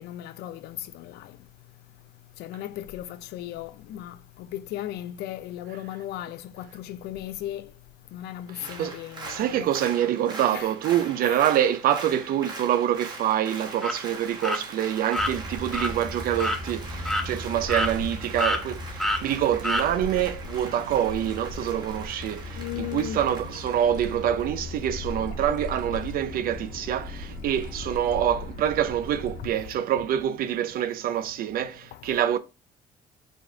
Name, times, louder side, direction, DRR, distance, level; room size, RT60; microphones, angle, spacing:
voice 1, 0.0-1.3 2.4-7.7 8.1-9.7 10.5-10.7 11.2-11.4 22.6-23.2 31.9-32.0, left 12 dB, 75° left, 0.4 m, -36 dB
Applause, 8.5-25.1 25.5-25.6, right 3 dB, 25° right, 1.3 m, -42 dB
voice 2, 8.5-9.0 9.3-32.4, right 10 dB, 60° right, 0.4 m, -26 dB
sound 1, 13.8-14.0 14.4-14.6 15.1-15.3 15.7-15.9 16.4-16.6 17.1-17.3 17.7-18.1 18.4-18.6 19.0-19.2 19.6-19.9, left 1 dB, ahead, 0.6 m, -26 dB
sound 2, 15.2-29.5, left 2 dB, 50° left, 1.3 m, -37 dB
5.0 x 2.4 x 3.7 m
cardioid pair, 110°, 17 cm